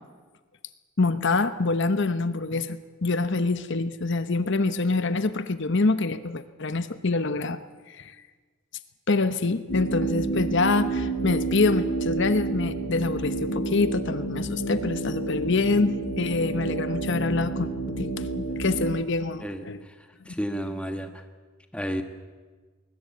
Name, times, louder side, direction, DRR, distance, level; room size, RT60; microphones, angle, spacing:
voice 1, 1.0-7.6 7.9-8.1 9.1-17.7 18.0-19.8, left 3 dB, 60° left, 12 dB, 1.0 m, -25 dB
sound 1, 9.7-18.9, right 3 dB, 80° left, 6.6 m, -29 dB
voice 2, 19.4-19.9 20.2-21.2 21.7-22.0, equal, 5° left, 6 dB, 1.4 m, -32 dB
20.5 x 19.5 x 8.4 m, 1.4 s
head